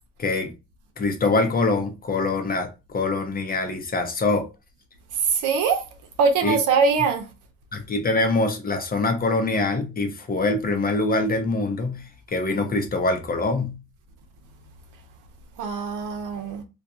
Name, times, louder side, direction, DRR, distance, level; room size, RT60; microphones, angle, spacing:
voice 1, 0.2-0.5 1.0-4.5 6.4-6.6 7.7-12.0 12.3-13.7, left 3 dB, 30° left, 0.6 m, -24 dB
voice 2, 5.2-5.8 6.2-7.3 15.6-16.6, right 5 dB, 85° right, 0.7 m, -22 dB
2.4 x 2.2 x 2.7 m
cardioid pair, 90°, 30 cm